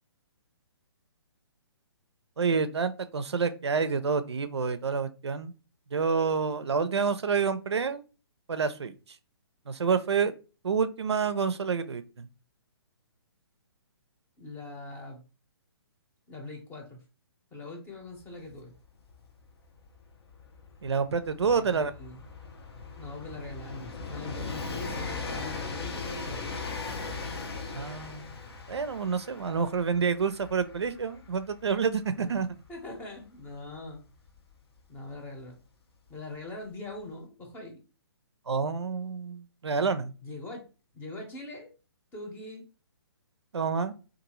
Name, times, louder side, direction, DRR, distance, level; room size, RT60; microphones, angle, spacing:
voice 1, 2.4-5.5 5.9-8.0 8.5-8.9 9.7-10.3 10.6-12.3 20.8-21.9 27.7-28.4 28.7-32.5 38.5-40.1 43.5-43.9, right 5 dB, 90° right, 0.4 m, -28 dB
voice 2, 14.4-15.2 16.3-17.0 17.5-18.7 21.4-22.2 23.0-26.5 32.1-32.4 32.7-34.0 34.9-35.6 36.1-37.8 40.2-40.7 40.9-41.7 42.1-42.6, left 2 dB, 15° left, 0.7 m, -42 dB
Train, 18.2-18.3 18.5-35.1 36.1-36.2, left 4 dB, 70° left, 0.7 m, -40 dB
2.7 x 2.4 x 2.9 m
figure-of-eight pair, 135°, 14 cm